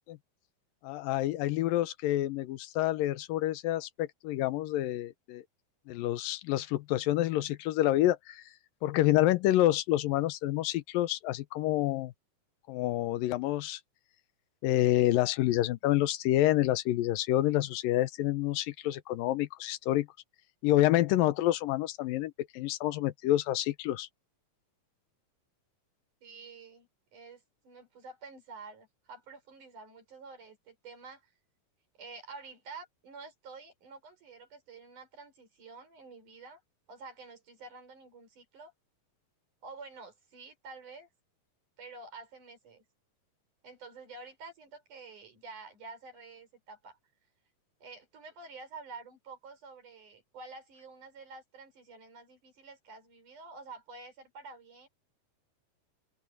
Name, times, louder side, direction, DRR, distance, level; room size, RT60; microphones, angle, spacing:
voice 1, 0.8-5.4 5.9-8.4 8.8-12.1 12.7-13.8 14.6-20.1 20.6-24.1, left 14 dB, 90° left, 2.6 m, -28 dB
voice 2, 26.2-31.3 32.0-36.6 36.9-38.7 39.6-41.1 41.8-42.8 43.6-47.0 47.8-54.9, right 4 dB, 65° right, 7.0 m, -49 dB
omnidirectional pair, 3.9 m